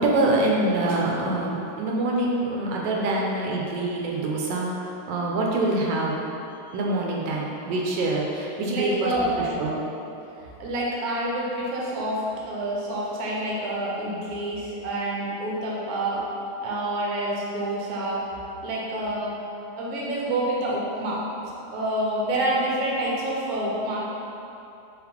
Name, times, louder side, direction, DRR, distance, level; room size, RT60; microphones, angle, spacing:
voice 1, 0.0-6.2 6.7-9.1 9.4-9.8, right 2 dB, 90° right, -2 dB, 1.3 m, -25 dB
voice 2, 8.7-9.5 10.6-16.2 16.6-18.2 18.6-19.3 19.8-21.2 21.7-24.0, right 1 dB, 65° right, -5 dB, 1.1 m, -27 dB
4.0 x 3.5 x 2.9 m, 2.8 s
omnidirectional pair, 1.9 m